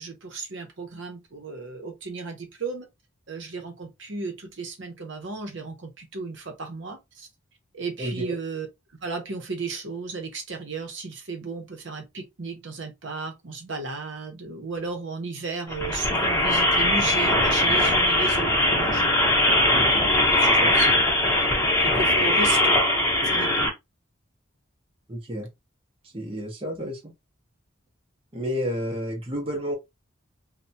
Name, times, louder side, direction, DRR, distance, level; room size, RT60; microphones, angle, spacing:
voice 1, 0.0-2.9 3.3-7.3 7.7-8.7 9.0-19.1 19.9-21.0 21.8-22.8 23.2-23.7, right 4 dB, 65° right, 0.8 m, -34 dB
voice 2, 8.0-8.4 20.6-20.7 25.1-25.5 26.1-27.1 28.3-29.7, equal, 25° right, 0.7 m, -30 dB
sound 1, 15.7-23.7, left 1 dB, 15° left, 0.8 m, -21 dB
3.3 x 2.2 x 2.7 m
head